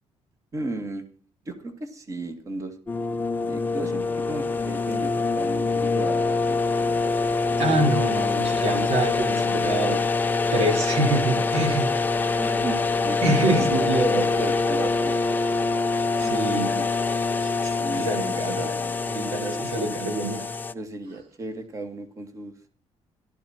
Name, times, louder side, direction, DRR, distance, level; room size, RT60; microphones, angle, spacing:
voice 1, 0.5-1.1 1.5-2.8 3.5-7.8 12.4-15.1 16.2-16.9 17.8-19.0 20.7-22.5, right 2 dB, 30° right, 7 dB, 2.1 m, -35 dB
sound 1, 2.9-20.7, left 4 dB, 15° left, 0.6 m, -25 dB
voice 2, 7.6-10.0 10.5-11.9 13.2-14.5 16.2-16.7 17.4-18.7 19.1-20.5, right 2 dB, 70° right, 4 dB, 4.3 m, -26 dB
16.5 x 12.5 x 4.4 m, 0.38 s
cardioid pair, 175°, 11 cm